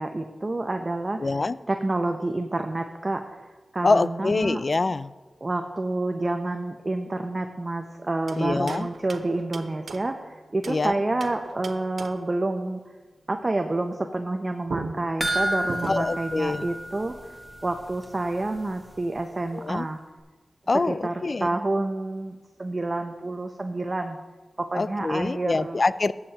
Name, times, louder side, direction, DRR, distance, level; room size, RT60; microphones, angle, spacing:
voice 1, 0.0-1.2 1.7-3.4 3.7-4.6 5.4-12.8 13.3-17.1 17.6-20.0 20.9-21.1 21.4-24.2 24.6-25.8, right 2 dB, 35° right, 5 dB, 0.6 m, -28 dB
voice 2, 1.2-1.6 3.8-5.1 8.4-8.9 10.7-11.0 15.9-16.7 19.5-19.9 20.7-21.6 24.7-26.1, left 3 dB, 45° left, 16 dB, 0.3 m, -25 dB
sound 1, 8.3-10.9 11.2-12.4 14.3-14.4 14.7-16.3, right 4 dB, 90° right, 0.6 m, -38 dB
sound 2, 15.2-17.7 18.0-18.1 18.6-18.7, right 1 dB, 10° right, 1.0 m, -30 dB
17.5 x 7.3 x 2.9 m, 1.3 s
wide cardioid pair, 90°, 0 cm